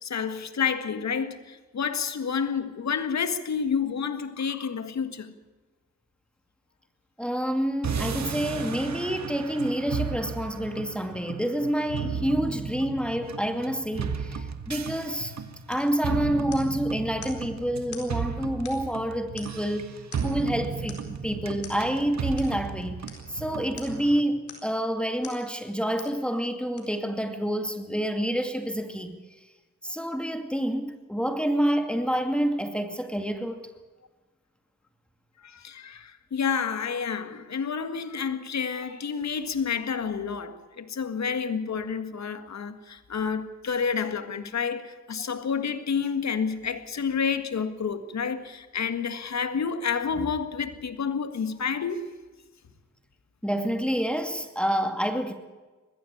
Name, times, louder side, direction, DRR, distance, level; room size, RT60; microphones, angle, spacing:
voice 1, 0.0-5.3 35.4-52.1, left 6 dB, 70° left, 1.8 m, -29 dB
voice 2, 7.2-15.3 15.7-19.9 20.2-23.0 23.3-29.2 29.8-33.6 53.4-55.3, equal, 5° left, 2.4 m, -28 dB
sound 1, 7.8-24.2, right 6 dB, 70° right, 1.7 m, -34 dB
sound 2, 15.7-15.9 16.5-16.8 17.2-17.4 17.9-18.1 18.7-19.0 19.4-19.7 20.1-20.4 20.9-21.1 21.6-21.8 22.4-22.5 23.1-23.3 23.8-24.0 24.5-24.8 25.2-25.4 26.0-26.2 26.8-26.9, left 5 dB, 90° left, 4.4 m, -45 dB
20.5 x 15.5 x 8.6 m
cardioid pair, 55°, 29 cm